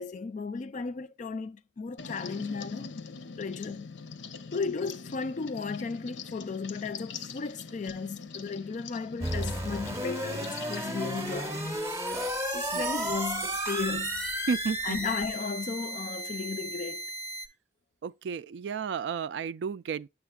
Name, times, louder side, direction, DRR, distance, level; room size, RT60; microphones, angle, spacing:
voice 1, 0.0-3.0 3.4-3.9 4.5-11.7 12.5-14.3 14.8-17.1, left 4 dB, 45° left, 0.4 m, -35 dB
sound 1, 2.0-11.8, left 5 dB, 85° left, 0.7 m, -43 dB
sound 2, 9.2-17.5, equal, 15° right, 0.7 m, -33 dB
Wind chime, 11.5-15.9 16.5-16.6, right 9 dB, 90° right, 0.8 m, -43 dB
voice 2, 14.5-15.0 18.0-20.1, right 6 dB, 70° right, 0.3 m, -32 dB
7.0 x 6.4 x 2.3 m
head